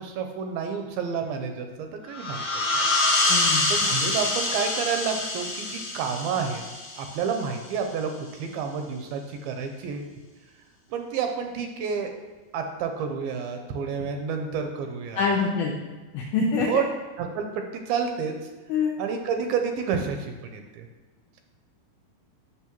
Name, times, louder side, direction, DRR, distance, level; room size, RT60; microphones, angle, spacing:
voice 1, 0.0-2.4 3.7-6.6 7.0-10.1 10.9-12.1 12.5-15.4 16.7-16.9 17.2-18.3 18.7-20.9, right 6 dB, 80° right, 5 dB, 2.3 m, -30 dB
sound 1, 2.1-7.5, left 2 dB, 60° left, 1.5 m, -26 dB
voice 2, 3.3-3.7 15.2-15.7 16.1-16.8 18.7-18.9, left 5 dB, 85° left, -1 dB, 1.9 m, -25 dB
8.3 x 7.0 x 2.9 m, 1.3 s
omnidirectional pair, 4.5 m